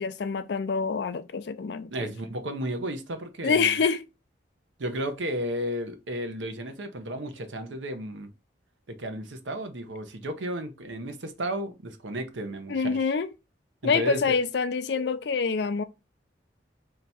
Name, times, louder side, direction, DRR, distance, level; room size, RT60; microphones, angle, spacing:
voice 1, 0.0-2.1 3.4-4.0 12.7-13.3 13.8-15.8, left 5 dB, 65° left, 0.4 m, -26 dB
voice 2, 1.9-3.8 4.8-8.3 8.9-13.1 13.8-14.4, equal, 85° right, 0.7 m, -33 dB
3.4 x 2.9 x 4.1 m
head